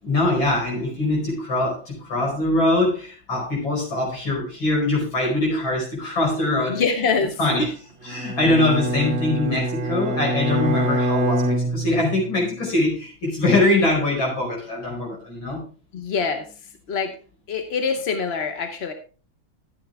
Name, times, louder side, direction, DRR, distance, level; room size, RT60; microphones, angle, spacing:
voice 1, 0.0-6.8 7.4-7.7 8.0-15.6, left 2 dB, 80° left, -1 dB, 5.9 m, -22 dB
voice 2, 6.7-7.7 15.9-16.5 16.9-17.1 17.5-18.9, left 5 dB, 45° left, 7 dB, 0.8 m, -24 dB
Bowed string instrument, 8.1-12.4, right 1 dB, 45° right, 0.8 m, -25 dB
14.0 x 8.3 x 3.4 m, 0.36 s
omnidirectional pair, 2.1 m